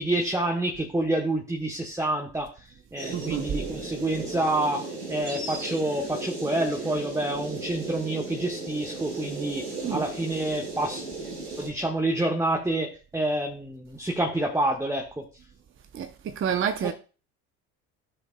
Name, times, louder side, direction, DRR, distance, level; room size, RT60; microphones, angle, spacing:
voice 1, 0.0-2.5 2.9-9.6 9.9-11.0 11.6-15.2, right 1 dB, 5° right, 1.3 m, -28 dB
sound 1, 3.0-11.7, right 3 dB, 90° right, 1.4 m, -36 dB
voice 2, 3.1-3.5 9.8-10.1 15.9-16.9, right 8 dB, 30° right, 0.6 m, -29 dB
15.5 x 5.3 x 2.2 m
figure-of-eight pair, 55°, 45 cm